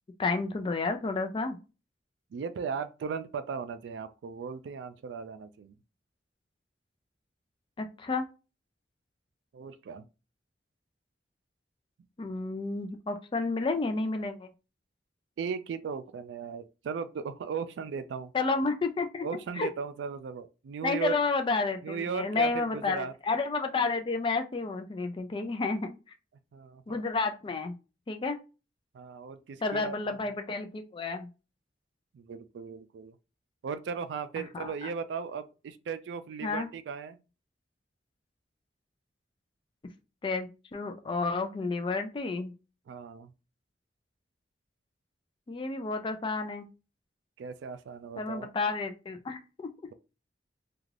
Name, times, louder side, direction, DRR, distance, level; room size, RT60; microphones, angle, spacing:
voice 1, 0.2-1.6 7.8-8.3 12.2-14.5 18.3-19.7 20.8-26.0 26.9-27.7 28.1-28.4 29.6-31.3 34.5-34.9 36.4-36.7 40.2-42.5 45.5-46.7 48.2-49.7, left 3 dB, 30° left, 0.4 m, -31 dB
voice 2, 2.3-5.7 9.5-10.0 15.4-18.3 19.2-21.1 21.8-23.1 26.5-27.0 28.9-30.0 32.1-33.2 33.6-37.2 42.9-43.3 47.4-48.5, right 6 dB, 85° right, 0.3 m, -37 dB
2.4 x 2.3 x 3.2 m
head